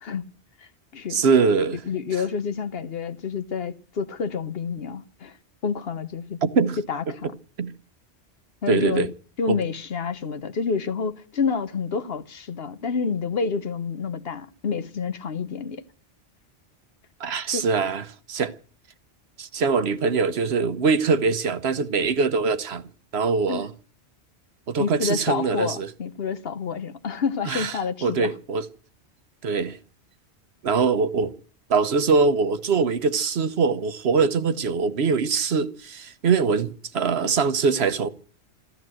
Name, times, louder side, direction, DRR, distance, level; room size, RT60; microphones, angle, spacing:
voice 1, 0.0-0.3 0.6-1.2 1.9-5.4 5.6-6.4 6.8-7.3 8.6-9.1 9.4-15.8 17.5-17.7 23.5-23.6 24.8-28.3, left 5 dB, 60° left, 1.1 m, -28 dB
voice 2, 1.1-1.8 6.4-6.8 7.6-7.7 8.7-9.1 9.5-9.6 17.2-18.5 19.4-22.8 23.1-23.7 24.7-25.9 27.5-28.7 29.4-29.8 30.6-31.3 31.7-38.1, right 5 dB, 65° right, 1.2 m, -23 dB
14.0 x 13.5 x 7.6 m
omnidirectional pair, 1.2 m